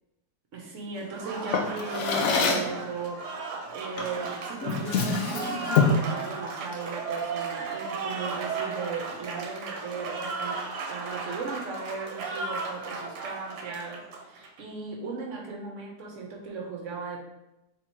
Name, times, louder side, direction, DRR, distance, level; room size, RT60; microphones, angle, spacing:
voice 1, 0.5-10.6 10.9-17.2, right 4 dB, 60° right, 1 dB, 0.9 m, -37 dB
Applause, 1.0-14.6, right 4 dB, 85° right, 1.2 m, -35 dB
Drawer open or close, 1.5-2.8 4.0-4.2 4.6-6.1, left 5 dB, 70° left, 0.9 m, -25 dB
3.4 x 2.8 x 4.3 m, 0.92 s
omnidirectional pair, 1.8 m